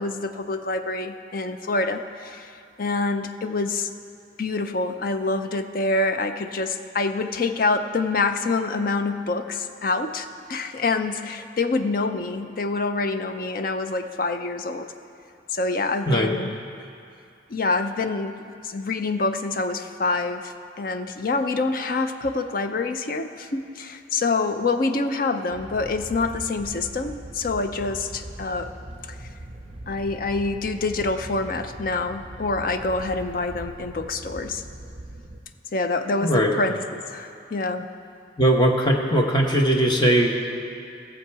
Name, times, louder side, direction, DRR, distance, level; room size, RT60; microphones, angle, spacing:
voice 1, 0.0-3.9 4.4-14.9 15.5-16.6 17.5-28.7 29.1-29.3 29.9-34.6 35.7-37.9, left 3 dB, 50° left, 8 dB, 0.5 m, -26 dB
sound 1, 25.5-35.4, right 1 dB, 30° right, 0.6 m, -40 dB
voice 2, 38.4-40.3, right 1 dB, 25° left, 0 dB, 1.0 m, -19 dB
17.0 x 7.1 x 4.7 m, 2.5 s
head